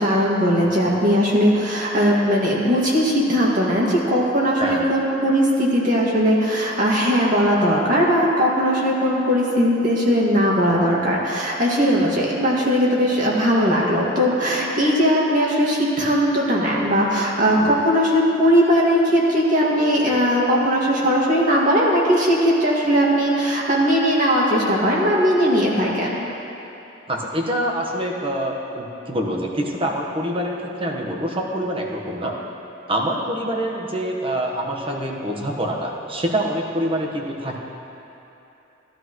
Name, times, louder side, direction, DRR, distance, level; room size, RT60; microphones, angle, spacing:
voice 1, 0.0-26.3, equal, 45° right, -4 dB, 2.2 m, -19 dB
voice 2, 4.6-4.9 11.9-12.0 17.6-17.7 27.1-32.3 32.9-37.6, right 1 dB, 30° right, 0 dB, 1.3 m, -25 dB
18.0 x 12.0 x 3.2 m, 3.0 s
head